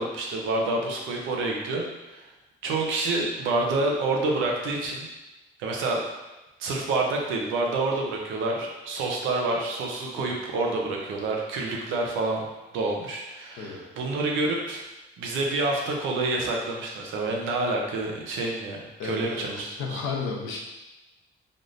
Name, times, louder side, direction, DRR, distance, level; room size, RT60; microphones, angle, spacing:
voice 1, 0.0-2.3 2.6-5.1 5.6-6.0 6.6-12.4 12.7-14.9 15.2-20.0, right 2 dB, 90° right, 0 dB, 0.7 m, -28 dB
voice 2, 19.0-20.6, left 4 dB, 90° left, 0 dB, 0.6 m, -33 dB
3.5 x 2.6 x 2.5 m, 1.0 s
cardioid pair, 90°, 20 cm